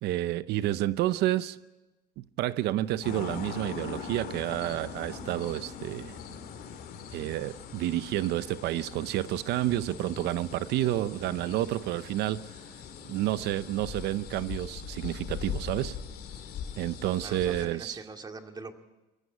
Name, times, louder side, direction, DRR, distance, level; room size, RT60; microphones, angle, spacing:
voice 1, 0.0-1.6 2.2-6.2 7.1-12.5 13.1-16.0 16.8-18.0, right 14 dB, 80° right, 0.7 m, -30 dB
sound 1, 3.0-17.7, left 7 dB, 65° left, 3.1 m, -41 dB
voice 2, 17.2-18.7, right 3 dB, 25° right, 2.2 m, -42 dB
24.0 x 14.5 x 9.9 m
cardioid pair, 110°, 17 cm